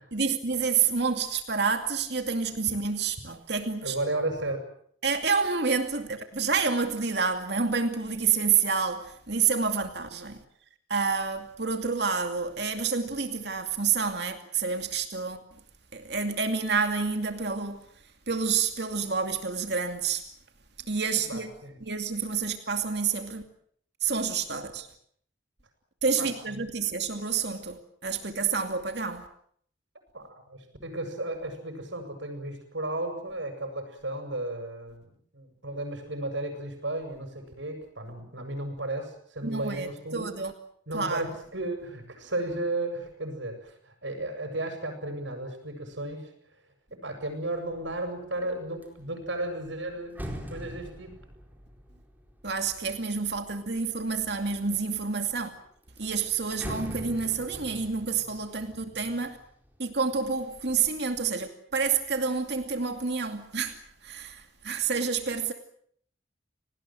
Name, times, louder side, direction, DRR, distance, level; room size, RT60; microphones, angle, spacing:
voice 1, 0.1-4.0 5.0-10.4 10.9-15.4 15.9-17.9 18.3-20.2 20.8-21.5 21.8-23.4 24.0-24.9 26.0-29.3 39.4-40.5 40.9-41.3 52.4-55.5 56.0-59.4 59.8-65.5, right 5 dB, 60° right, 2.5 m, -28 dB
voice 2, 3.8-4.7 21.3-21.8 26.2-26.3 30.1-40.4 40.9-46.3 46.9-50.2 50.5-51.1, right 2 dB, 75° right, 7.8 m, -34 dB
sound 1, 47.7-48.1 48.5-53.8 54.4-55.1 55.4-55.5 55.8-59.7 60.1-60.8, equal, 10° right, 4.3 m, -43 dB
29.5 x 19.5 x 7.8 m
head